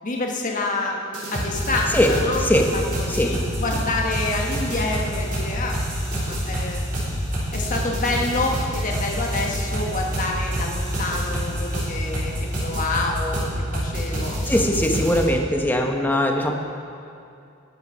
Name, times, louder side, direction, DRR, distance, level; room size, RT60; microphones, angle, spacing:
voice 1, 0.0-1.0 1.3-5.8 6.1-6.8 7.5-14.4, left 2 dB, 40° left, 0 dB, 1.3 m, -27 dB
sound 1, 1.1-15.2, equal, 40° right, 3.7 m, -27 dB
voice 2, 2.4-2.7 3.1-3.5 14.5-16.5, equal, 10° left, 2 dB, 1.0 m, -20 dB
20.0 x 6.9 x 5.6 m, 2.6 s
head